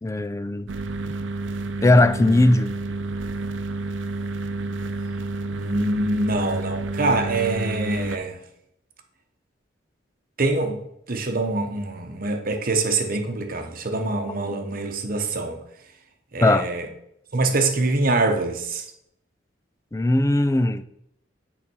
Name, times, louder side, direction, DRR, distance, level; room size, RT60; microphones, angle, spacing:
voice 1, 0.0-0.7 1.8-2.7 14.5-14.6 16.4-16.7 19.9-20.8, left 2 dB, 15° left, 0.4 m, -19 dB
sound 1, 0.7-8.2, right 2 dB, 85° right, 0.6 m, -30 dB
voice 2, 5.5-8.4 10.4-10.8 11.1-15.6 16.3-16.9 17.3-18.9, right 2 dB, 50° right, 1.0 m, -24 dB
8.6 x 4.1 x 6.2 m
head